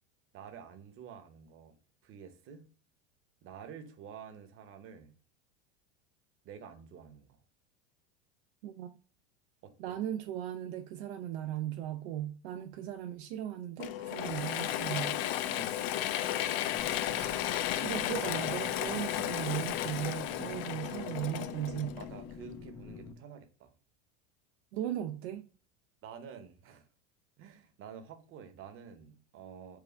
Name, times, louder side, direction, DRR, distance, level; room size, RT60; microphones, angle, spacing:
voice 1, 0.3-1.8 2.0-2.7 3.4-5.1 6.4-7.4 9.6-9.9 15.5-15.8 22.0-23.7 26.0-26.8 27.4-29.8, right 7 dB, 40° right, 1.0 m, -49 dB
voice 2, 8.6-9.0 9.8-15.2 17.0-17.5 17.8-22.0 24.7-25.5, right 11 dB, 70° right, 0.6 m, -37 dB
Mechanisms / Drill, 13.8-22.4, left 12 dB, 65° left, 0.5 m, -34 dB
sound 1, 16.7-23.1, left 5 dB, 10° left, 0.4 m, -47 dB
4.8 x 2.4 x 3.2 m
supercardioid pair, 120°, 33 cm